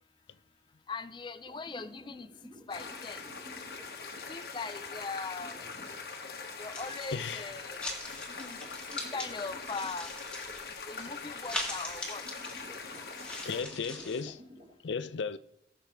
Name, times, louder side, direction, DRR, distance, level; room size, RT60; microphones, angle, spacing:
voice 1, 0.9-2.3 2.7-3.3 4.3-5.6 6.6-7.8 8.3-8.6 8.9-10.1 10.7-12.3, left 4 dB, 25° left, 0.4 m, -40 dB
sound 1, 1.4-5.9 8.0-8.1 8.3-10.6 10.8-10.9 11.3-11.4 12.0-14.7, equal, 45° right, 3.3 m, -53 dB
sound 2, 2.7-13.6, left 4 dB, 60° left, 1.3 m, -42 dB
sound 3, 6.7-7.4 7.8-9.3 9.6-14.2, left 1 dB, 5° left, 2.0 m, -41 dB
voice 2, 7.1-7.5 13.4-14.4 14.8-15.4, left 5 dB, 90° left, 0.5 m, -35 dB
20.0 x 6.7 x 3.5 m
head